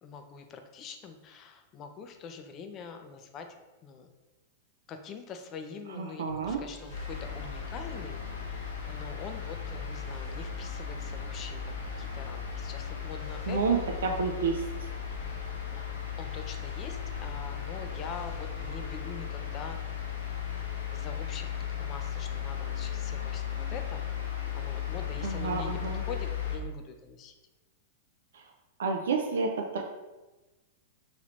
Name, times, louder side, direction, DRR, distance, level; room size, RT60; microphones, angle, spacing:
voice 1, 0.0-3.5 3.8-4.1 4.9-8.2 8.5-13.8 15.7-19.8 20.9-24.0 24.5-27.3, left 5 dB, 35° left, 6 dB, 0.4 m, -44 dB
voice 2, 6.0-6.6 13.5-14.6 25.2-26.0 28.3-28.5 28.8-29.8, right 5 dB, 70° right, 2 dB, 0.3 m, -30 dB
sound 1, 6.2-19.1, right 4 dB, 15° right, 0.9 m, -47 dB
sound 2, 6.9-26.6, left 9 dB, 75° left, 0.7 m, -36 dB
3.0 x 2.9 x 2.5 m, 1.1 s
hypercardioid pair, 100°, 0 cm